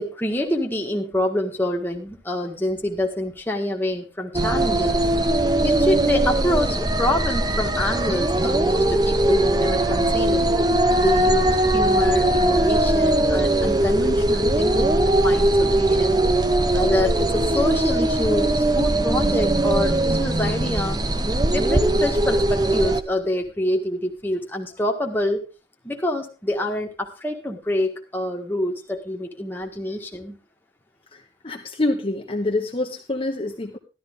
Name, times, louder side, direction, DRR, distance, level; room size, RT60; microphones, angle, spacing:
voice 1, 0.0-5.0 5.6-10.5 11.0-16.2 16.7-21.0 21.5-25.4 25.8-30.4, left 1 dB, 10° left, 1 dB, 1.6 m, -26 dB
sound 1, 4.3-23.0, right 1 dB, 20° right, 0.7 m, -20 dB
voice 2, 31.1-33.8, left 2 dB, 30° left, 1 dB, 1.1 m, -26 dB
13.0 x 12.5 x 3.7 m, 0.31 s
head